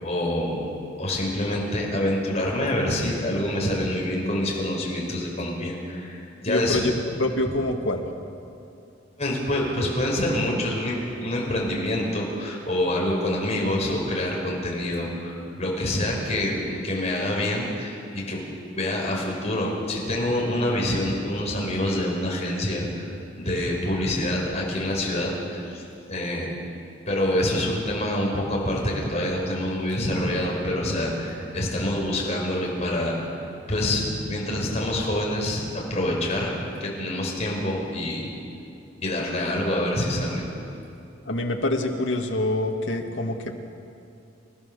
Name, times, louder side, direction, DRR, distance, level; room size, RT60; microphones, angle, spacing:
voice 1, 0.0-0.7 1.0-6.8 9.2-18.4 18.7-23.1 23.4-26.5 27.1-33.2 33.7-36.5 36.8-38.3 39.0-40.4, left 1 dB, 35° left, -2 dB, 5.1 m, -26 dB
voice 2, 6.5-6.9 7.2-8.0 41.3-43.6, left 1 dB, 75° left, 3 dB, 2.0 m, -25 dB
28.5 x 14.5 x 6.9 m, 2.6 s
head